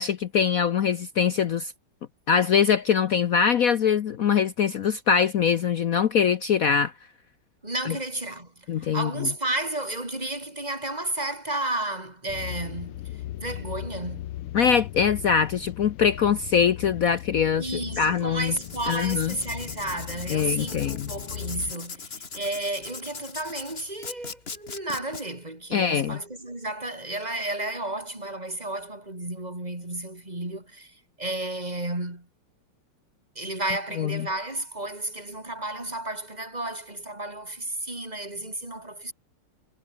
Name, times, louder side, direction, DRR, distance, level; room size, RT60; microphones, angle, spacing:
voice 1, 0.0-1.7 2.3-6.9 7.9-8.0 8.7-9.3 14.5-18.5 18.9-19.3 20.3-21.1 25.7-26.2 34.0-34.3, left 7 dB, 65° left, 0.9 m, -23 dB
voice 2, 7.6-13.1 13.4-14.3 17.6-32.3 33.3-39.1, right 1 dB, 20° right, 4.6 m, -32 dB
sound 1, 12.3-21.7, left 14 dB, 85° left, 1.7 m, -38 dB
Writing, 18.4-25.2, left 5 dB, 30° left, 1.6 m, -40 dB
omnidirectional pair, 2.4 m